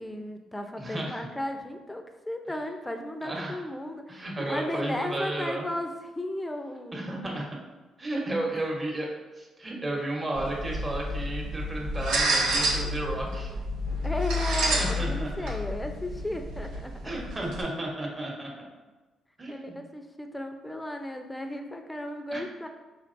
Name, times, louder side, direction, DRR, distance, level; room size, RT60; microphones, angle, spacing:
voice 1, 0.0-7.0 8.4-8.6 14.0-17.1 19.5-22.7, left 1 dB, 10° left, 5 dB, 0.5 m, -35 dB
voice 2, 0.8-1.3 3.2-3.6 4.1-5.6 6.9-7.5 8.0-9.1 9.4-13.5 14.8-15.5 17.0-18.7 19.4-19.8 22.3-22.4, right 1 dB, 25° right, -2 dB, 1.1 m, -33 dB
sound 1, 10.3-17.6, equal, 85° right, 0.8 m, -29 dB
4.5 x 3.6 x 2.6 m, 1.2 s
cardioid pair, 90°, 0 cm